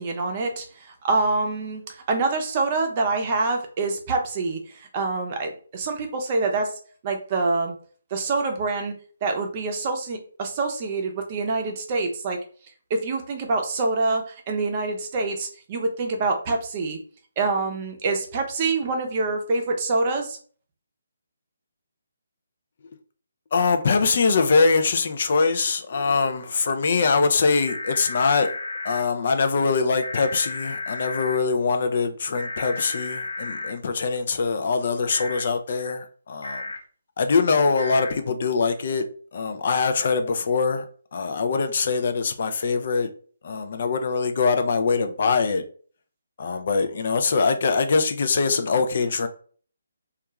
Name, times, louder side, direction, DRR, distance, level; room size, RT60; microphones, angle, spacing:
voice 1, 0.0-7.7 8.1-8.9 9.2-12.4 12.9-17.0 17.4-20.4, right 3 dB, 35° right, 0.6 m, -26 dB
voice 2, 23.5-28.5 28.8-36.6 37.2-39.0 39.3-40.8 41.1-43.1 43.4-45.6 46.4-49.3, left 4 dB, 55° left, 0.4 m, -23 dB
sound 1, 27.6-29.0 30.0-31.4 32.3-33.7 35.1-35.4 36.4-36.8 37.8-38.1, left 3 dB, 85° left, 0.9 m, -33 dB
2.4 x 2.2 x 3.0 m
figure-of-eight pair, 150°, 0 cm